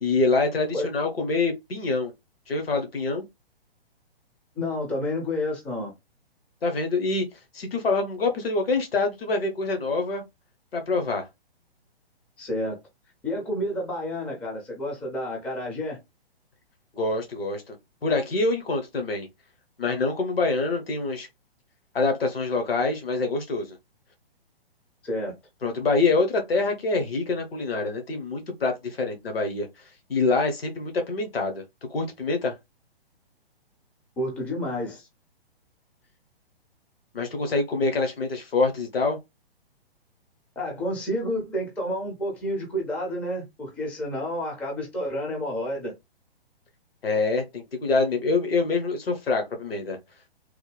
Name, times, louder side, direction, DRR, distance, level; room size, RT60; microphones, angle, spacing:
voice 1, 0.0-2.1 2.5-3.2 6.6-7.2 7.5-10.2 10.7-11.3 16.9-17.8 18.0-19.3 19.8-21.3 21.9-23.8 25.6-29.7 30.1-31.6 31.9-32.5 37.1-39.2 47.0-50.0, left 3 dB, 70° left, 1.2 m, -25 dB
voice 2, 4.6-5.9 12.4-12.8 13.2-16.0 25.0-25.4 34.2-35.1 40.6-45.9, left 1 dB, 5° left, 0.4 m, -30 dB
3.3 x 2.1 x 3.2 m
figure-of-eight pair, 125°, 31 cm